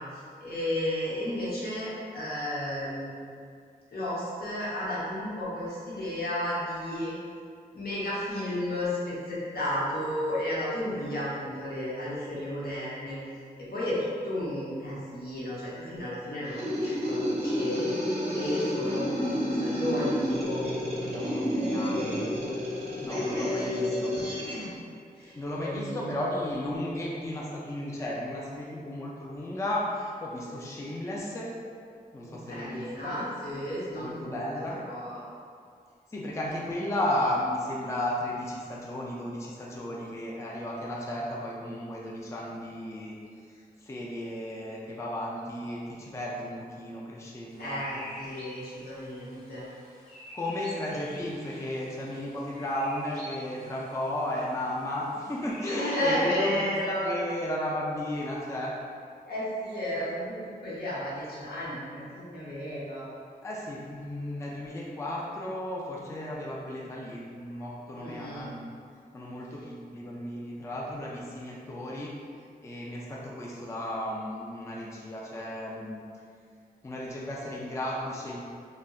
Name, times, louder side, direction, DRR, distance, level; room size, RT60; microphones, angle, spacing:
voice 1, 0.0-3.2 3.9-7.1 7.7-13.2 13.6-17.9 18.3-20.6 23.0-24.8 25.1-26.4 32.2-34.4 34.7-35.2 47.6-49.6 55.7-57.2 59.2-63.1 67.9-68.5, left 1 dB, 80° left, -8 dB, 0.8 m, -33 dB
sound 1, 16.5-24.7, equal, 40° right, 0.6 m, -30 dB
voice 2, 21.0-22.0 23.0-24.1 25.3-31.5 32.1-33.2 33.9-34.8 36.1-43.2 43.8-47.9 50.3-58.7 63.4-68.6 69.1-72.1 72.6-76.0 76.8-78.4, left 1 dB, 20° left, -4 dB, 0.3 m, -34 dB
sound 2, 47.5-56.3, left 1 dB, 45° left, 1.2 m, -48 dB
3.7 x 2.1 x 2.2 m, 2.2 s
wide cardioid pair, 105°, 16 cm